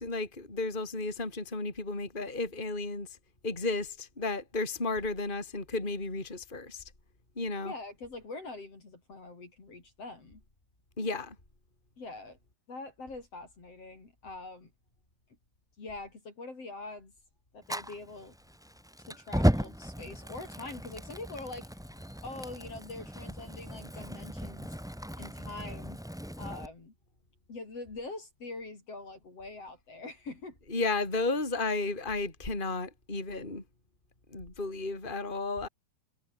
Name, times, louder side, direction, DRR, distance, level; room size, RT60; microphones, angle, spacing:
voice 1, 0.0-3.2 3.4-6.8 7.4-7.7 11.0-11.4 30.7-33.6 34.3-35.7, left 3 dB, 10° left, 4.7 m, -33 dB
voice 2, 7.6-10.4 12.0-12.4 12.7-14.7 15.8-17.1 17.5-18.3 19.1-21.7 22.2-24.7 25.2-26.0 26.4-26.9 27.5-30.6, left 3 dB, 40° left, 5.8 m, -44 dB
Fire, 17.6-26.6, equal, 5° right, 0.5 m, -35 dB
omnidirectional pair, 4.4 m